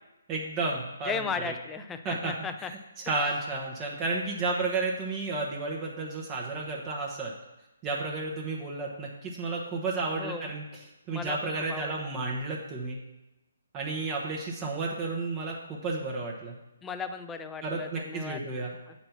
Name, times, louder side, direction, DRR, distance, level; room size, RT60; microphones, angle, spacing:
voice 1, 0.3-1.5 2.0-2.3 2.6-2.7 3.0-7.3 7.8-10.6 11.1-13.0 13.7-16.6 17.6-18.7, right 3 dB, 25° right, -2 dB, 1.0 m, -32 dB
voice 2, 1.0-2.7 10.1-10.5 11.1-12.1 16.8-18.4 18.9-19.0, left 5 dB, 10° left, 8 dB, 0.5 m, -36 dB
7.7 x 4.3 x 5.8 m, 1.0 s
figure-of-eight pair, 140°, 0 cm